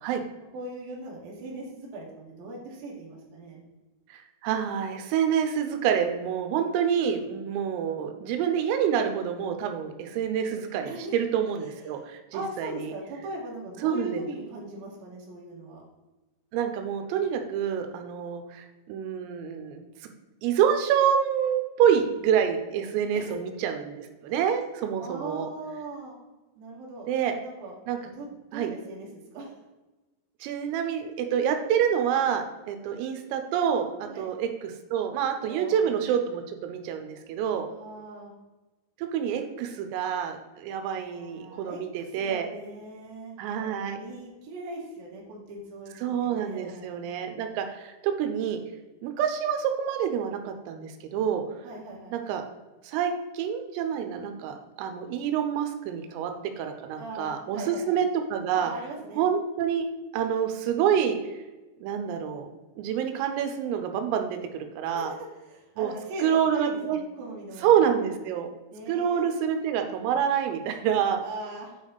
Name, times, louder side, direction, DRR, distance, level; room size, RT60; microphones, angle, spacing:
voice 1, 0.5-3.6 10.8-11.1 11.6-15.8 23.1-23.4 25.0-26.2 26.6-27.7 28.0-29.7 34.1-34.3 35.4-35.9 37.7-38.3 41.0-47.0 51.6-52.1 54.1-54.3 57.0-58.0 58.5-59.3 64.9-67.9 68.7-69.3 71.2-71.8, right 2 dB, 60° right, -3 dB, 2.9 m, -40 dB
voice 2, 4.1-12.9 13.8-14.2 16.5-19.8 20.4-25.5 27.1-27.3 27.9-28.0 28.5-28.7 30.4-37.7 39.1-42.5 43.4-44.0 46.0-48.6 49.0-51.4 52.1-52.4 52.8-58.7 59.2-59.9 60.1-61.2 61.8-62.5 62.8-65.1 65.8-65.9 66.2-67.0 67.6-68.5 68.9-71.2, right 8 dB, 90° right, 6 dB, 3.4 m, -27 dB
9.0 x 5.3 x 3.9 m, 1.1 s
omnidirectional pair, 5.8 m